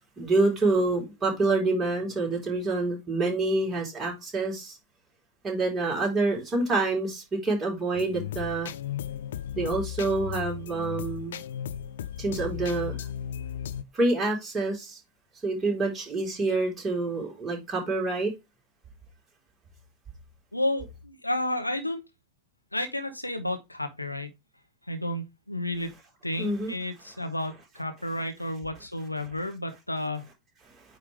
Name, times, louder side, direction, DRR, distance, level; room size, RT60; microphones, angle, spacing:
voice 1, 0.2-4.8 5.4-8.7 9.5-11.4 12.2-12.9 13.9-15.0 15.4-18.3 26.4-26.7, right 3 dB, 20° right, 3.9 m, -27 dB
sound 1, 7.9-13.8, left 10 dB, 60° left, 0.6 m, -35 dB
voice 2, 20.5-22.0 22.7-24.3 24.9-25.9 26.2-30.3, left 1 dB, 85° left, 1.0 m, -31 dB
9.1 x 3.6 x 3.4 m
figure-of-eight pair, 90°, 0 cm